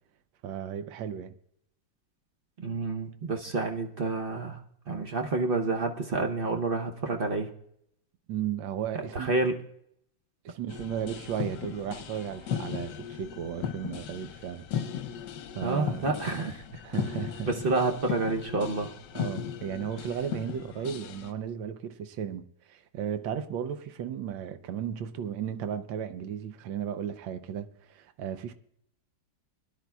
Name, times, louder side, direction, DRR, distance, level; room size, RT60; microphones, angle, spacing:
voice 1, 0.4-1.3 8.3-9.3 10.4-14.7 15.5-16.1 16.8-17.5 19.1-28.5, right 9 dB, 85° right, 1.5 m, -35 dB
voice 2, 2.6-4.6 4.9-7.5 9.1-9.6 15.6-16.6 17.4-18.9, right 3 dB, 50° right, 0.6 m, -29 dB
sound 1, 10.7-21.3, left 8 dB, 70° left, 1.3 m, -37 dB
22.0 x 11.0 x 2.3 m
omnidirectional pair, 2.0 m